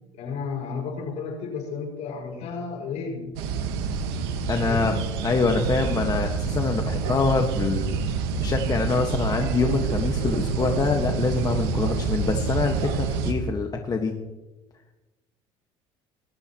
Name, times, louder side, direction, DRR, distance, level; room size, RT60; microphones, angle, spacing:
voice 1, 0.1-3.3 4.6-4.9, left 5 dB, 65° left, 2 dB, 5.9 m, -32 dB
sound 1, 3.4-13.3, right 5 dB, 90° right, 1.5 m, -27 dB
voice 2, 4.5-4.9 5.2-8.0 8.4-14.1, left 4 dB, 30° left, 3 dB, 1.6 m, -25 dB
21.0 x 15.0 x 3.1 m, 1.1 s
supercardioid pair, 85°, 13 cm